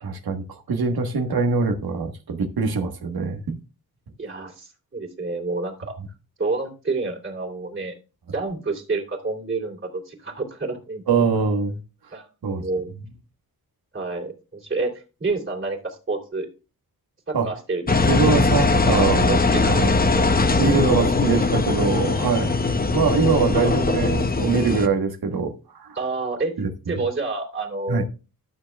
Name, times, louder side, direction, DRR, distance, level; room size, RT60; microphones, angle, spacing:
voice 1, 0.0-3.6 11.1-11.8 12.4-12.7 17.3-17.5 18.0-19.9 20.6-22.6 22.9-26.0 26.6-27.0 27.9-28.0, right 4 dB, 75° right, 1.5 m, -23 dB
voice 2, 4.2-5.9 6.4-7.9 8.3-11.3 12.1-12.9 13.9-16.5 17.3-18.3 18.8-19.8 20.2-20.3 20.9-21.1 23.5-23.8 25.9-26.5 26.9-28.1, right 3 dB, 35° right, 3.1 m, -29 dB
Engine, 17.9-24.9, left 3 dB, 25° left, 0.7 m, -20 dB
12.5 x 7.0 x 2.4 m
wide cardioid pair, 105°, 37 cm